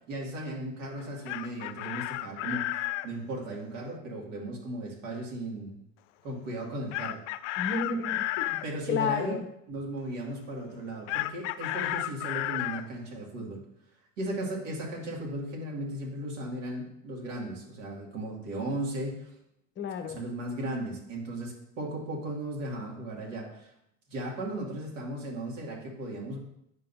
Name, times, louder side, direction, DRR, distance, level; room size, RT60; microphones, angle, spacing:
voice 1, 0.1-5.8 6.2-7.2 8.6-9.4 9.7-13.6 14.2-19.3 20.1-23.7 24.1-26.4, right 1 dB, 75° right, -2 dB, 2.5 m, -36 dB
Chicken rooster, 1.0-3.1 6.9-8.7 11.1-12.8, left 16 dB, 65° left, 0.5 m, -32 dB
voice 2, 7.6-9.5 19.8-20.2, left 5 dB, 30° left, 7 dB, 0.7 m, -32 dB
9.6 x 5.5 x 2.8 m, 0.78 s
hypercardioid pair, 105°, 39 cm